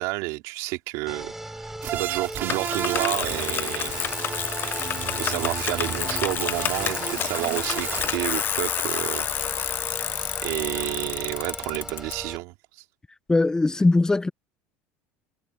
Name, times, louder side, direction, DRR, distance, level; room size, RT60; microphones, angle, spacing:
voice 1, 0.0-4.1 5.2-9.7 10.4-12.6, right 23 dB, 70° right, 3.7 m, -30 dB
sound 1, 1.1-12.4, right 1 dB, 5° right, 5.8 m, -39 dB
sound 2, 1.8-8.1, right 10 dB, 45° right, 3.1 m, -33 dB
Bicycle, 2.5-12.1, left 9 dB, 40° left, 1.1 m, -29 dB
voice 2, 13.3-14.3, left 2 dB, 10° left, 1.1 m, -20 dB
supercardioid pair, 100°, 6 cm